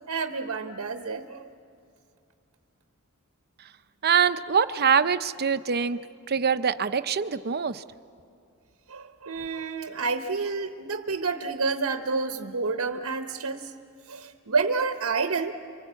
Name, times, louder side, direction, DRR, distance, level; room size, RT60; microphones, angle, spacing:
voice 1, 0.1-1.5 8.9-13.7 14.1-15.5, right 4 dB, 70° right, 6 dB, 1.0 m, -29 dB
voice 2, 4.0-6.0 6.3-7.8, right 6 dB, 45° right, 12 dB, 0.7 m, -24 dB
29.0 x 24.0 x 8.3 m, 2.4 s
head